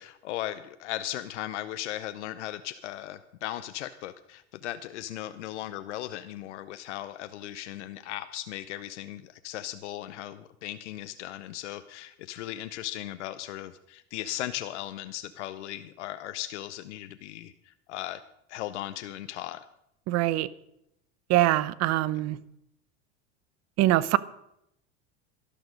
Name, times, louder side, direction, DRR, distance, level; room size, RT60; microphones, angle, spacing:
voice 1, 0.0-18.2 18.5-19.6, left 13 dB, 90° left, 0.7 m, -37 dB
voice 2, 20.1-20.5 21.3-22.4 23.8-24.2, right 15 dB, 50° right, 0.7 m, -23 dB
12.5 x 12.0 x 5.2 m
supercardioid pair, 110°, 34 cm